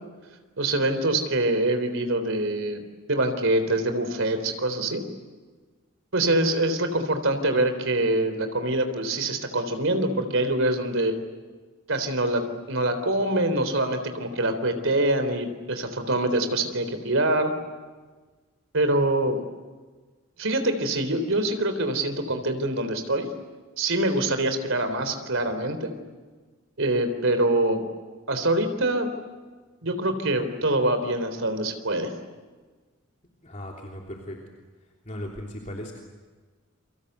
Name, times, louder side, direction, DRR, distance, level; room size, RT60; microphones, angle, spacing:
voice 1, 0.6-2.8 3.1-5.0 6.1-11.1 11.9-12.4 12.7-17.5 18.7-19.4 20.4-23.3 23.8-25.9 26.8-27.8 28.3-29.1 29.8-32.1, right 1 dB, 70° right, 8 dB, 3.8 m, -24 dB
voice 2, 33.4-34.4 35.0-36.0, left 1 dB, 35° left, 0 dB, 3.2 m, -37 dB
29.0 x 24.5 x 8.1 m, 1.4 s
head